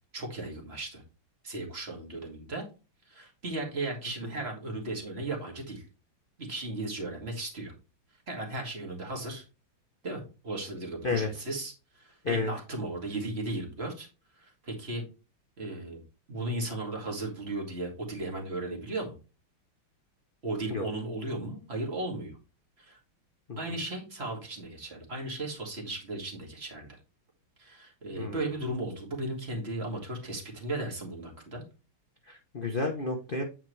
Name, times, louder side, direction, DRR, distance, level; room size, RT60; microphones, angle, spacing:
voice 1, 0.1-1.0 1.4-2.6 3.1-5.9 6.4-7.7 8.3-9.4 10.0-14.1 14.4-15.0 15.6-16.0 16.3-19.1 20.4-22.4 22.8-23.0 23.6-27.0 27.6-31.6, right 2 dB, 30° right, 1 dB, 2.4 m, -36 dB
voice 2, 32.3-33.4, left 3 dB, 40° left, 2 dB, 0.7 m, -31 dB
9.0 x 4.9 x 3.2 m, 0.31 s
omnidirectional pair, 2.3 m